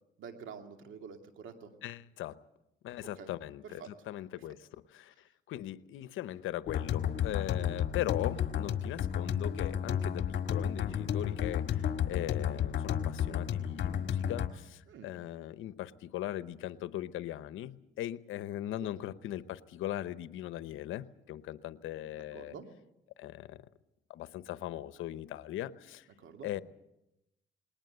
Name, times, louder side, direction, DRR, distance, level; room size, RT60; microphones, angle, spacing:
voice 1, 0.2-1.7 3.2-3.3 3.6-3.9 14.9-15.1 18.8-18.9 22.3-22.7 26.2-26.5, right 6 dB, 75° right, 5 dB, 2.6 m, -47 dB
voice 2, 1.8-2.4 2.8-5.1 5.5-22.5 23.2-23.6 24.1-26.1 26.4-26.6, left 13 dB, 85° left, 14 dB, 0.9 m, -39 dB
sound 1, 6.7-14.5, left 9 dB, 65° left, 1.7 m, -32 dB
20.0 x 19.5 x 8.0 m, 0.89 s
cardioid pair, 90°, 20 cm